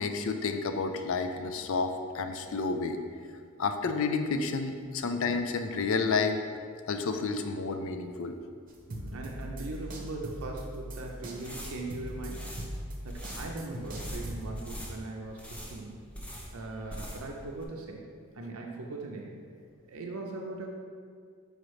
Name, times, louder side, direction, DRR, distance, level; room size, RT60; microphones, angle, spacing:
voice 1, 0.0-3.0 3.6-6.4 6.9-8.4, left 4 dB, 65° left, 6 dB, 0.4 m, -30 dB
sound 1, 8.7-14.5, equal, 40° right, 0.7 m, -40 dB
voice 2, 8.9-12.5 13.0-16.0 16.5-18.0 18.3-19.3 19.9-20.7, right 2 dB, 80° right, 0 dB, 0.6 m, -40 dB
sound 2, 11.3-17.4 17.6-17.7, equal, 5° left, 0.6 m, -43 dB
6.3 x 4.9 x 3.1 m, 2.1 s
head